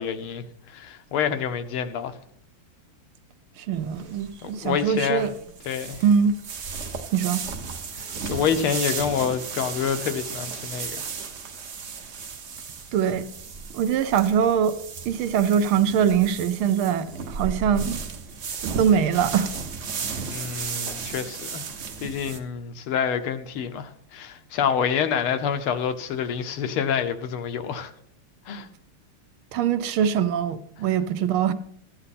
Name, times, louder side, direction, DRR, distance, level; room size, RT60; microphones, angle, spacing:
voice 1, 0.0-2.2 4.4-5.3 5.6-6.0 8.2-11.0 20.3-21.7 22.0-27.9 28.5-28.7, left 7 dB, 80° left, 1.8 m, -27 dB
voice 2, 3.6-5.3 6.0-6.4 7.1-7.5 12.9-13.3 13.7-14.8 15.1-18.0 18.6-19.5 29.5-31.5, right 8 dB, 75° right, 1.6 m, -22 dB
sound 1, 3.7-22.4, right 5 dB, 45° right, 0.9 m, -35 dB
13.5 x 9.7 x 4.2 m
omnidirectional pair, 2.3 m